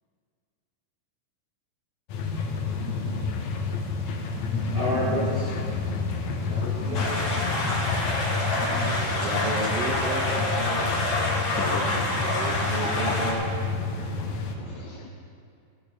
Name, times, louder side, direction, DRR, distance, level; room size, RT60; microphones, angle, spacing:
sound 1, 2.1-14.6, left 4 dB, 65° left, 2.1 m, -29 dB
voice 1, 4.7-5.6 6.5-7.8, equal, 35° right, -6 dB, 2.5 m, -31 dB
sound 2, 6.9-13.3, left 2 dB, 45° left, 2.5 m, -27 dB
voice 2, 8.8-11.2 11.5-11.8 12.1-13.5, right 3 dB, 75° right, -1 dB, 1.4 m, -34 dB
voice 3, 11.6-12.1 12.5-13.4 14.6-15.1, left 7 dB, 90° left, 3 dB, 1.6 m, -37 dB
15.5 x 11.5 x 4.3 m, 2.4 s
omnidirectional pair, 4.2 m